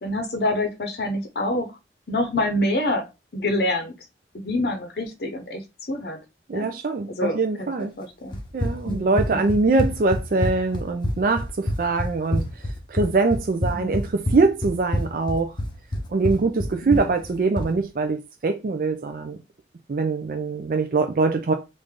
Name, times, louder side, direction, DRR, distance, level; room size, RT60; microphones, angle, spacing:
voice 1, 0.0-1.8 2.1-3.1 3.3-4.0 4.3-6.2 6.5-6.7 7.1-8.4 8.9-9.6 13.7-13.9 16.8-17.1, left 1 dB, 65° left, 0.7 m, -27 dB
voice 2, 6.5-7.9 8.5-12.4 12.9-15.5 16.1-19.4 19.9-21.5, right 3 dB, 50° right, 0.4 m, -23 dB
Run, 8.3-17.8, left 1 dB, 25° left, 0.6 m, -27 dB
3.2 x 2.5 x 3.6 m
head